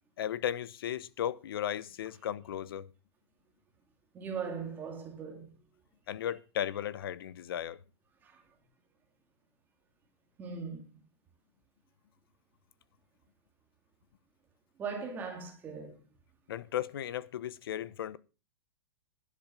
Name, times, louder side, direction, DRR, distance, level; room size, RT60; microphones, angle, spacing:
voice 1, 0.2-2.9 6.1-7.8 16.5-18.2, left 10 dB, 55° left, 1.0 m, -35 dB
voice 2, 4.1-5.5 8.2-8.4 10.4-10.9 14.8-16.0, right 5 dB, 15° right, 2.1 m, -39 dB
12.0 x 10.5 x 5.2 m
hypercardioid pair, 170°, 14 cm